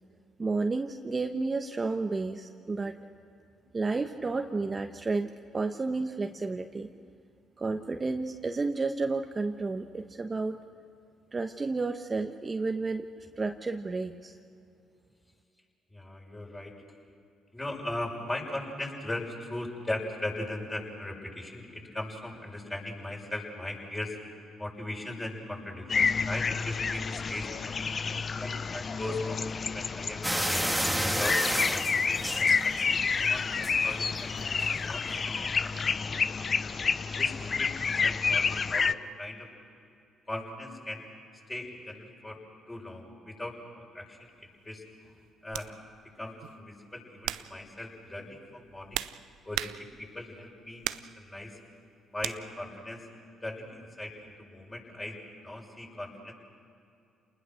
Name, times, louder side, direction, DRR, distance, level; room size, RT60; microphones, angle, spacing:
voice 1, 0.4-3.0 3.7-6.9 7.6-10.6 11.3-13.1 13.4-14.3, right 3 dB, 30° right, 5 dB, 1.1 m, -31 dB
voice 2, 15.9-16.8 17.5-24.2 24.6-27.8 28.4-31.9 32.4-32.8 33.3-35.7 36.0-36.7 37.2-39.5 40.3-41.1 41.5-42.4 42.7-44.3 44.6-44.8 45.4-45.8 46.2-49.0 49.4-50.9 51.2-51.6 52.1-53.0 53.4-55.2 55.4-56.3, left 1 dB, 20° left, -1 dB, 7.0 m, -39 dB
sound 1, 25.9-38.9, left 5 dB, 45° left, 0.7 m, -29 dB
sound 2, 30.2-33.1 33.5-33.9 34.6-34.7 35.1-35.2, right 1 dB, 5° right, 1.7 m, -30 dB
sound 3, 44.2-44.4 45.5-45.7 46.4-46.7 47.2-47.6 48.5-50.2 50.8-51.2 52.2-52.4, right 14 dB, 75° right, 0.5 m, -36 dB
29.5 x 20.0 x 6.4 m, 2.6 s
hypercardioid pair, 55°, 0 cm